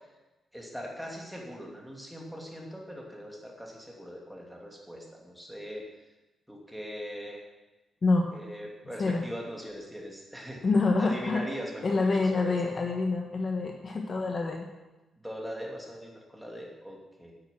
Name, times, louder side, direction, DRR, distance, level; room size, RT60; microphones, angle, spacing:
voice 1, 0.5-5.8 6.5-7.4 8.3-10.6 11.0-12.6 15.2-17.3, equal, ahead, -1 dB, 2.7 m, -41 dB
voice 2, 10.6-11.4 11.8-14.7, left 3 dB, 40° left, 2 dB, 1.2 m, -26 dB
9.4 x 9.2 x 7.7 m, 1.1 s
cardioid pair, 125°, 0 cm